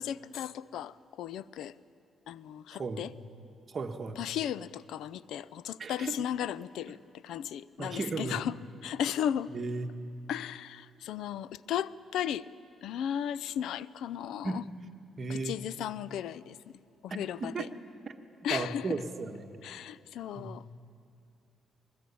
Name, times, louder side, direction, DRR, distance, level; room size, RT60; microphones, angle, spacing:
voice 1, 0.0-1.7 2.3-3.1 4.2-7.0 7.2-8.6 8.8-9.5 10.3-12.5 12.8-14.6 15.3-16.6 17.0-17.7 18.4-19.0 19.6-20.6, left 10 dB, 80° left, 19 dB, 0.5 m, -35 dB
voice 2, 3.7-4.2 5.8-6.2 7.8-8.4 9.5-9.9 14.4-14.6 15.2-15.6 17.1-17.2 17.5-17.7 18.1-18.2 18.5-19.5 20.4-20.6, right 4 dB, 40° right, 3 dB, 1.6 m, -35 dB
21.5 x 20.0 x 8.6 m, 2.6 s
cardioid pair, 90°, 0 cm